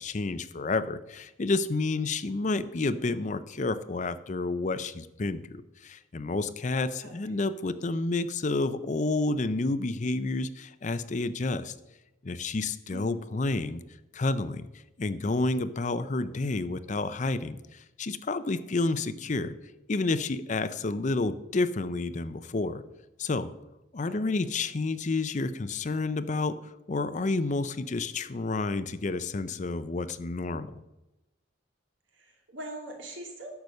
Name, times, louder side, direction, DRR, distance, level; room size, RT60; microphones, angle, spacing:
voice 1, 0.0-11.7 12.2-13.8 14.1-14.7 15.0-19.5 19.9-22.8 23.2-23.5 23.9-30.8, left 3 dB, 40° left, 14 dB, 0.5 m, -30 dB
voice 2, 7.0-7.3 12.9-13.3 24.1-24.5 32.1-33.5, right 1 dB, 75° right, 2 dB, 2.6 m, -42 dB
10.5 x 6.9 x 6.5 m, 0.96 s
head